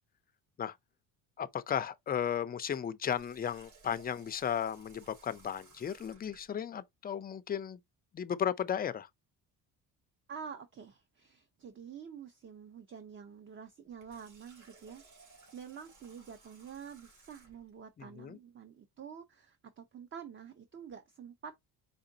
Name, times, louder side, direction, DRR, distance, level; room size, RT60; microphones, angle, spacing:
voice 1, 1.4-7.8 8.1-9.1 18.0-18.4, left 8 dB, 25° left, 0.4 m, -35 dB
Water tap faucet, 3.1-6.5 13.9-17.7, right 3 dB, 50° right, 3.1 m, -60 dB
voice 2, 10.3-21.5, right 7 dB, 30° right, 0.7 m, -48 dB
4.9 x 3.7 x 2.7 m
cardioid pair, 125°, 39 cm